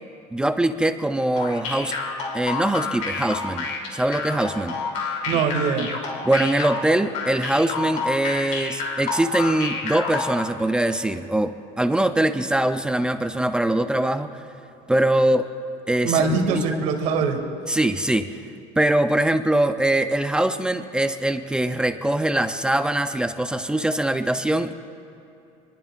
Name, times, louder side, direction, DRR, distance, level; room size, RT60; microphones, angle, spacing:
voice 1, 0.3-1.9 2.3-4.8 6.2-14.4 14.9-15.5 15.9-16.8 17.7-18.4 18.8-24.7, right 1 dB, 5° right, 8 dB, 0.4 m, -22 dB
sound 1, 1.4-10.5, left 4 dB, 55° left, 2.9 m, -29 dB
voice 2, 5.3-5.9 16.0-17.4, right 5 dB, 55° right, 3 dB, 2.1 m, -22 dB
27.5 x 21.0 x 2.4 m, 2.7 s
cardioid pair, 165°, 15 cm